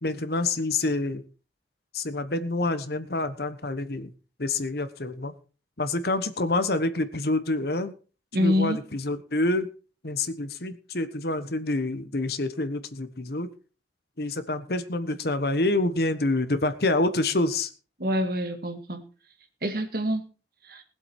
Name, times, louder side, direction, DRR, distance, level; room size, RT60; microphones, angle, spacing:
voice 1, 0.0-1.2 1.9-4.1 4.4-5.3 5.8-7.9 8.3-9.7 10.0-13.5 14.2-17.7, left 2 dB, 60° left, 11 dB, 1.2 m, -27 dB
voice 2, 8.3-8.8 18.0-19.0 19.6-20.2 20.6-20.8, left 1 dB, 55° right, 5 dB, 2.2 m, -26 dB
20.0 x 7.9 x 4.4 m, 0.36 s
head